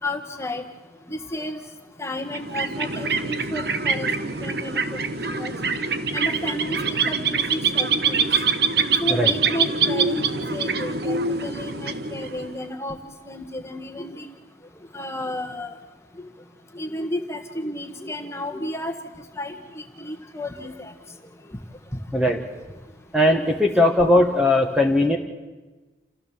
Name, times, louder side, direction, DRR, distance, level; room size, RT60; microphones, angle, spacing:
voice 1, 0.0-0.6 1.1-1.6 2.0-4.8 5.3-5.5 6.1-8.2 9.0-13.0 13.3-14.3 14.9-15.8 16.7-18.9 19.4-20.9 23.4-23.6, left 1 dB, 15° left, 5 dB, 1.6 m, -32 dB
sound 1, 2.2-12.6, right 5 dB, 55° right, 1.2 m, -24 dB
voice 2, 23.1-25.2, left 1 dB, 5° right, 2 dB, 1.3 m, -18 dB
28.0 x 15.5 x 7.3 m, 1.2 s
head